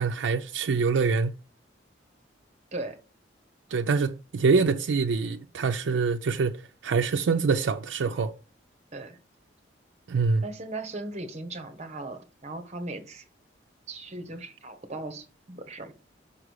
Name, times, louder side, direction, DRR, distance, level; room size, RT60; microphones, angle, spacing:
voice 1, 0.0-1.3 3.7-8.3 10.1-10.4, right 4 dB, 85° right, 0.4 m, -25 dB
voice 2, 10.4-13.2 13.9-15.9, right 2 dB, 35° right, 1.0 m, -38 dB
5.6 x 4.9 x 6.3 m
head